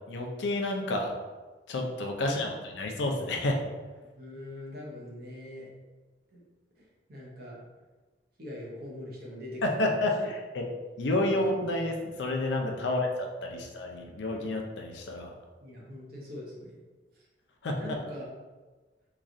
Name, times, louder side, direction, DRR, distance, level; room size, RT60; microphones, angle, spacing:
voice 1, 0.1-1.1 1.7-3.6 9.6-10.6 11.0-13.1 13.4-15.3 17.6-17.8, left 2 dB, 70° left, 2 dB, 0.4 m, -30 dB
voice 2, 4.2-5.7 6.3-6.4 6.8-7.6 8.4-10.3 11.3-11.9 12.8-13.0 13.5-13.6 15.6-16.8 17.1-17.2 17.7-18.3, left 1 dB, 55° right, -4 dB, 0.8 m, -43 dB
3.0 x 2.3 x 2.5 m, 1.3 s
head